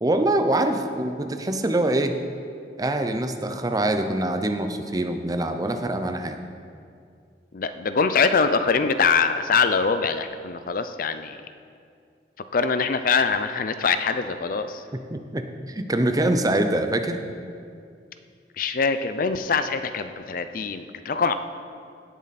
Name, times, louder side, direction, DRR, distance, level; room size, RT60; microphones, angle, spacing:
voice 1, 0.0-2.2 2.8-6.4 15.1-17.2, right 1 dB, 20° right, 7 dB, 0.6 m, -24 dB
voice 2, 7.5-11.4 12.5-14.8 18.6-21.3, left 5 dB, 50° left, 10 dB, 0.5 m, -23 dB
17.0 x 7.3 x 4.2 m, 2.3 s
head